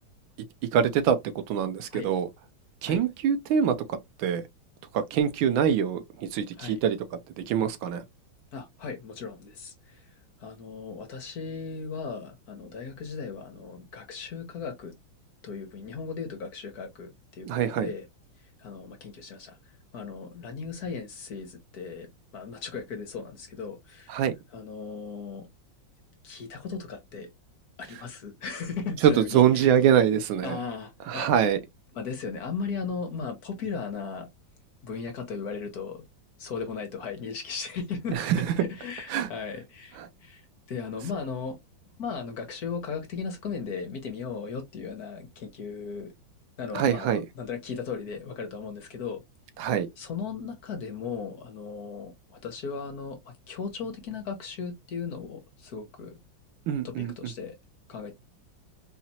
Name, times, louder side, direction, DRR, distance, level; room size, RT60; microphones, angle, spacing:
voice 1, 0.7-1.2 1.5-2.3 2.8-4.4 4.9-7.0 7.4-8.0 17.5-17.9 24.1-24.3 29.2-30.6 31.1-31.6 38.1-38.5 39.1-39.3 46.7-47.2 49.6-49.9 56.7-57.1, right 8 dB, 80° right, 1.5 m, -24 dB
voice 2, 8.5-10.1 10.4-14.9 15.4-18.1 18.6-19.6 19.9-22.1 22.3-24.2 24.5-25.5 26.2-27.3 27.8-29.7 30.4-31.5 31.9-34.3 34.8-36.0 36.4-40.4 40.7-41.6 41.9-46.1 46.6-49.2 50.0-53.2 53.5-56.2 56.8-57.6 57.9-58.1, left 5 dB, 55° left, 1.3 m, -37 dB
4.3 x 2.9 x 2.8 m
omnidirectional pair, 2.2 m